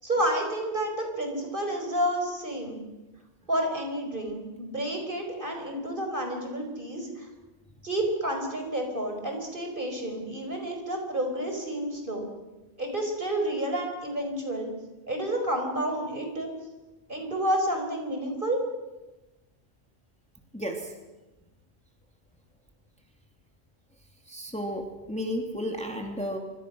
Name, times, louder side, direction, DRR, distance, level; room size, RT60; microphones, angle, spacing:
voice 1, 0.0-2.8 3.5-7.3 7.8-12.3 12.8-14.7 15.1-16.5 17.1-18.6, right 1 dB, 50° right, 3 dB, 5.1 m, -30 dB
voice 2, 20.5-20.9 24.3-26.4, equal, 5° left, 2 dB, 2.5 m, -33 dB
26.5 x 24.5 x 6.2 m, 1.1 s
omnidirectional pair, 1.2 m